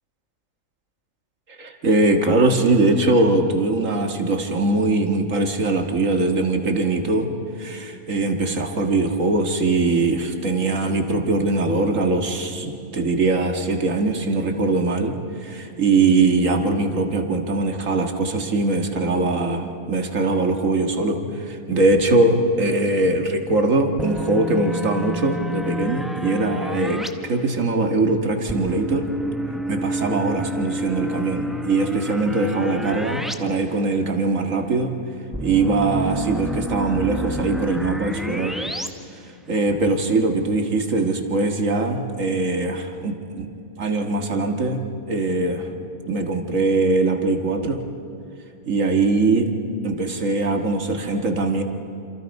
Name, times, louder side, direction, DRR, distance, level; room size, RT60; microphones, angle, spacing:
voice 1, 1.6-7.3 7.6-29.1 29.7-34.9 35.4-38.6 39.5-43.5 43.8-45.7 46.1-47.8 48.7-49.5 49.8-51.6, right 3 dB, 70° right, 4 dB, 2.1 m, -21 dB
sound 1, 24.0-27.1 28.5-33.3 33.7-33.8 35.3-38.9, equal, ahead, 0.8 m, -29 dB
27.5 x 27.0 x 5.4 m, 2.6 s
omnidirectional pair, 1.4 m